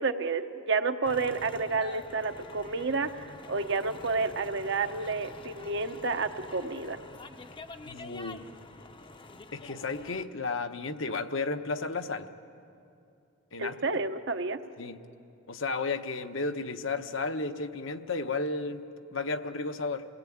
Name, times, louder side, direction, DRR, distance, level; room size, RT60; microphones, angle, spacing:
voice 1, 0.0-7.0 13.6-14.6, right 4 dB, 60° right, 8 dB, 1.0 m, -30 dB
sound 1, 1.0-10.3, left 3 dB, 25° left, 0.7 m, -47 dB
voice 2, 7.8-8.4 9.5-12.3 13.5-13.8 14.8-15.0 15.5-18.8 19.1-20.1, left 3 dB, 65° left, 7 dB, 1.1 m, -33 dB
29.0 x 19.0 x 8.7 m, 2.5 s
head